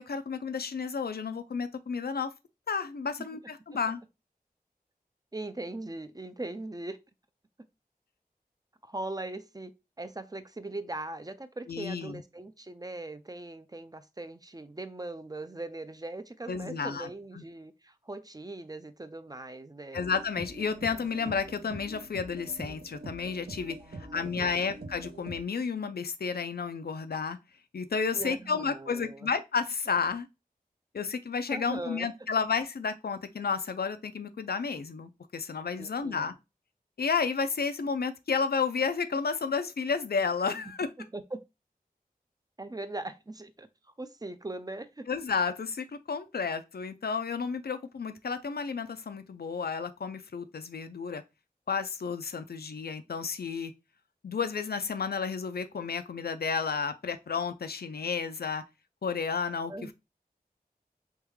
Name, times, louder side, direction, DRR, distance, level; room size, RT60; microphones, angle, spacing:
voice 1, 0.0-2.3 2.7-4.0 11.7-12.2 16.5-17.1 17.4-17.5 19.9-27.4 27.7-30.3 30.9-36.3 37.0-40.9 45.1-51.2 51.7-53.7 54.2-58.6 59.0-59.7, left 5 dB, 80° left, 0.4 m, -32 dB
voice 2, 5.3-7.0 8.8-9.7 10.0-20.0 23.8-24.7 28.1-29.3 31.5-32.1 35.8-36.4 40.5-41.4 42.6-45.1 59.7-59.9, right 2 dB, 25° right, 0.4 m, -40 dB
sound 1, 19.9-25.4, right 2 dB, 80° right, 0.6 m, -44 dB
3.5 x 2.2 x 3.1 m
wide cardioid pair, 45°, 16 cm